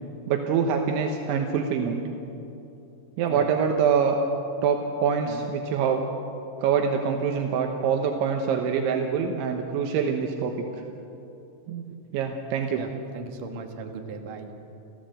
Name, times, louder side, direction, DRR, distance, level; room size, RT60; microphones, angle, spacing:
voice 1, 0.3-2.0 3.2-4.2 4.6-6.1 6.6-10.5 11.7-11.8 12.1-12.8, right 6 dB, 80° right, 3 dB, 3.5 m, -25 dB
voice 2, 12.8-14.5, right 4 dB, 55° right, 4 dB, 2.8 m, -38 dB
29.0 x 16.0 x 7.8 m, 2.8 s
omnidirectional pair, 5.4 m